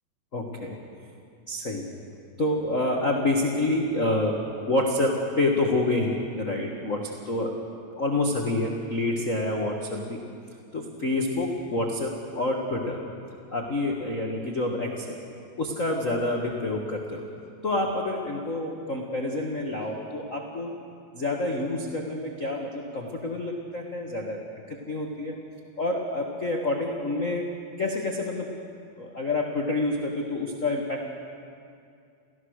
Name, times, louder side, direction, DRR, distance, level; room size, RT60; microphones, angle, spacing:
voice 1, 0.3-0.8 1.5-1.8 2.4-4.4 4.7-7.5 7.9-10.2 10.7-13.0 13.5-15.2 15.6-17.2 17.6-20.8 21.1-24.4 24.7-25.4 25.8-27.5 27.8-28.5 29.0-31.1, left 2 dB, 80° left, 0 dB, 0.7 m, -28 dB
29.0 x 15.5 x 6.5 m, 2.4 s
omnidirectional pair, 4.2 m